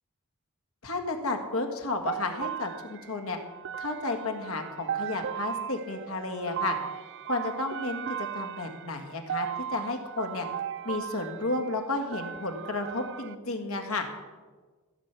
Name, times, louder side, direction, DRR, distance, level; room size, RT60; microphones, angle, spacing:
voice 1, 0.8-3.4 3.8-6.8 7.2-10.5 10.8-14.1, left 2 dB, 70° left, 4 dB, 1.8 m, -32 dB
sound 1, 2.1-13.3, right 9 dB, 55° right, 0.4 m, -37 dB
15.0 x 6.0 x 8.3 m, 1.4 s
head